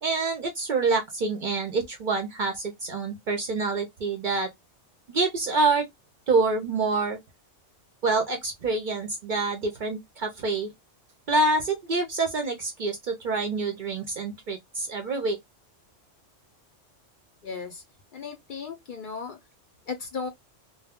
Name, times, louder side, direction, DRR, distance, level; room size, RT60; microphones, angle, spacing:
voice 1, 0.0-4.5 5.1-5.9 6.3-7.2 8.0-10.7 11.3-15.4, right 3 dB, 60° right, 0.5 m, -26 dB
voice 2, 17.4-17.8 18.1-19.4 19.9-20.3, left 5 dB, 60° left, 0.5 m, -35 dB
2.1 x 2.1 x 3.4 m
omnidirectional pair, 1.3 m